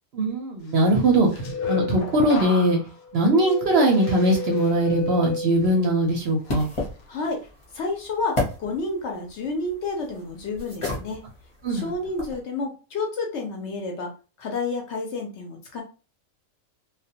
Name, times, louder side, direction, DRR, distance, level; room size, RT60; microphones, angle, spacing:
voice 1, 0.1-2.8 3.1-6.7 11.6-11.9, right 1 dB, 60° right, 1 dB, 0.7 m, -21 dB
sound 1, 1.0-6.0 6.4-6.9, left 4 dB, 85° left, 1.1 m, -32 dB
sound 2, 4.7-12.4, left 2 dB, 30° left, 0.6 m, -35 dB
voice 2, 7.1-7.5 7.7-11.2 11.7-15.8, left 3 dB, 65° left, 2 dB, 0.8 m, -30 dB
2.3 x 2.2 x 2.7 m, 0.34 s
omnidirectional pair, 1.4 m